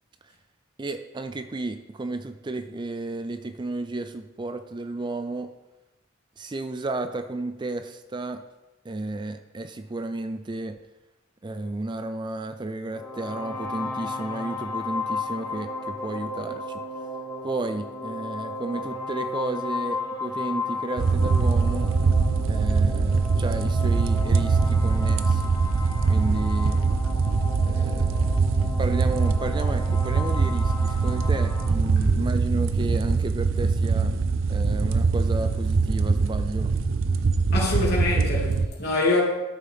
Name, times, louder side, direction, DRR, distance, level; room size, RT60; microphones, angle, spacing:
voice 1, 0.8-5.5 6.4-8.4 8.8-10.8 11.4-16.8 17.4-21.9 22.4-25.5 26.1-26.8 27.6-28.3 28.8-34.1 34.5-36.7, right 2 dB, 25° right, 0.4 m, -32 dB
sound 1, 12.9-31.7, left 3 dB, 20° left, 1.2 m, -34 dB
sound 2, 21.0-38.7, right 4 dB, 80° right, 0.5 m, -23 dB
voice 2, 37.5-39.2, left 3 dB, 55° left, 3.0 m, -25 dB
13.0 x 6.6 x 3.5 m
head